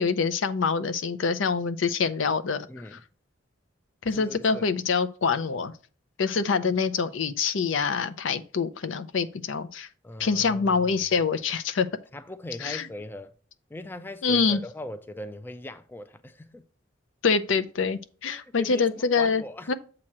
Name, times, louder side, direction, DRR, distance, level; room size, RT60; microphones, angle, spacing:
voice 1, 0.0-2.7 2.9-3.0 4.0-5.7 6.2-9.9 10.2-11.9 12.6-12.9 14.2-14.6 17.2-19.7, left 5 dB, 75° left, 0.6 m, -25 dB
voice 2, 2.7-3.0 4.1-4.7 10.0-10.9 12.1-13.3 13.7-16.6 18.2-19.7, left 2 dB, 10° left, 0.3 m, -40 dB
7.5 x 3.0 x 6.0 m
head